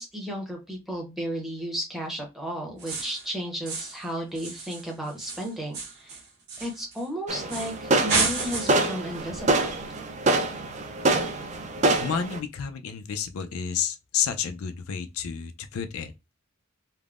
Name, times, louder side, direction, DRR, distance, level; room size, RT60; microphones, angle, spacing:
voice 1, 0.0-6.2 6.6-9.7, equal, ahead, 0.7 m, -34 dB
sound 1, 2.8-3.3 3.7-4.1 4.4-7.1 7.5-7.8 8.1-8.9, right 3 dB, 55° right, 1.2 m, -31 dB
sound 2, 7.3-12.4, right 2 dB, 35° right, 0.4 m, -26 dB
voice 2, 12.0-16.1, left 7 dB, 90° left, 0.4 m, -30 dB
3.4 x 2.0 x 2.4 m
head